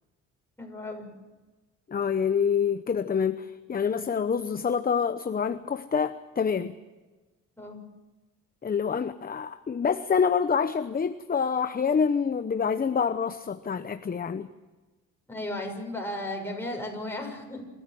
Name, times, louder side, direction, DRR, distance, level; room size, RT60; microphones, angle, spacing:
voice 1, 0.6-1.1 7.6-7.8 15.3-17.7, left 1 dB, 10° left, 1 dB, 6.7 m, -35 dB
voice 2, 1.9-6.8 8.6-14.5, left 6 dB, 30° left, 11 dB, 0.9 m, -27 dB
27.0 x 14.5 x 7.8 m, 1.2 s
cardioid pair, 90°, 30 cm